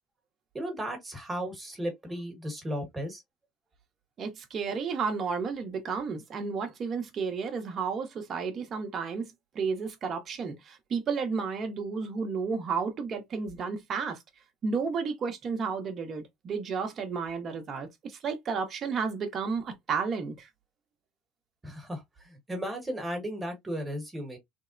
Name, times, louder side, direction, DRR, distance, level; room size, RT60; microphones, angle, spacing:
voice 1, 0.5-3.2 21.6-24.4, equal, 15° right, 1.2 m, -35 dB
voice 2, 4.2-9.3 9.5-14.2 14.6-20.5, right 5 dB, 35° right, 0.9 m, -32 dB
3.4 x 2.1 x 2.5 m
cardioid pair, 125°, 0 cm